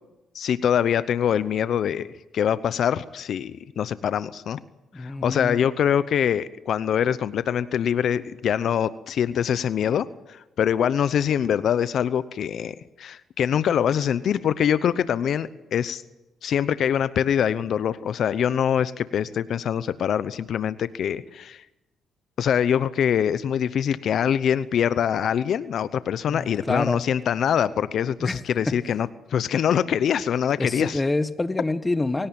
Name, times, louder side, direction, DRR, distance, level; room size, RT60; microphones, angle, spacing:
voice 1, 0.3-4.6 5.0-16.0 16.4-21.6 22.4-31.0, left 9 dB, 65° left, 15 dB, 0.8 m, -24 dB
voice 2, 4.9-5.6 26.3-27.0 28.2-28.7 30.6-32.3, left 2 dB, 15° left, 12 dB, 1.3 m, -27 dB
24.5 x 17.0 x 8.9 m, 1.0 s
cardioid pair, 90°, 0 cm